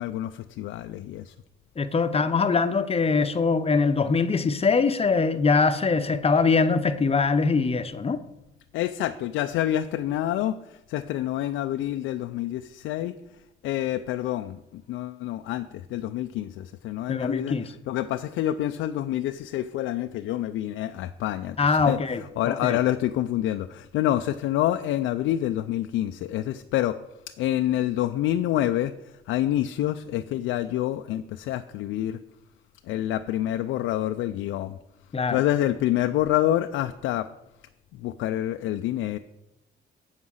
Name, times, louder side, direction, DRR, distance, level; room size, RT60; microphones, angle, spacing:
voice 1, 0.0-1.3 8.7-13.2 13.6-27.0 27.4-32.2 32.8-34.8 35.3-37.3 37.9-39.2, left 13 dB, 85° left, 0.4 m, -27 dB
voice 2, 1.8-8.2 17.1-17.7 21.6-22.8 35.1-35.4, left 4 dB, 30° left, 0.7 m, -23 dB
8.0 x 5.6 x 6.3 m
cardioid pair, 90°, 20 cm